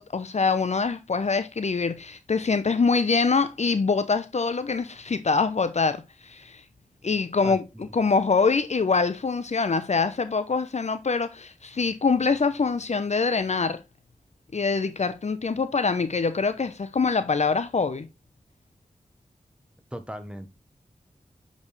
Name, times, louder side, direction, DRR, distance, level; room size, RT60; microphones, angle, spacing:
voice 1, 0.0-6.6 7.0-13.8 14.5-18.1, left 4 dB, 55° left, 0.7 m, -24 dB
voice 2, 7.4-7.8 19.9-20.5, equal, 5° right, 1.2 m, -38 dB
6.8 x 5.2 x 3.2 m
cardioid pair, 55°, 14 cm